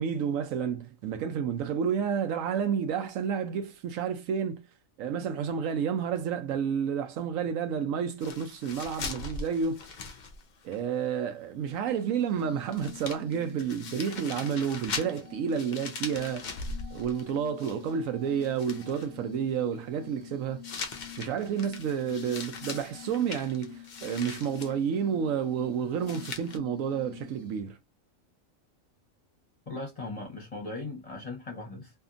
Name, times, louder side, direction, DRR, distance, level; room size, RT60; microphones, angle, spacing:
voice 1, 0.0-4.6 5.0-9.8 10.6-16.6 16.9-20.7 21.2-27.8, right 7 dB, 80° right, 1.0 m, -30 dB
sound 1, 8.2-10.8 11.0-11.1 12.4-12.5 12.7-18.1 18.4-19.1 20.6-24.7 26.0-26.6, left 4 dB, 70° left, 0.4 m, -40 dB
Glass, 11.9-27.6, left 12 dB, 5° left, 0.9 m, -48 dB
voice 2, 29.7-31.9, left 2 dB, 35° left, 0.7 m, -38 dB
2.7 x 2.5 x 2.4 m
omnidirectional pair, 1.4 m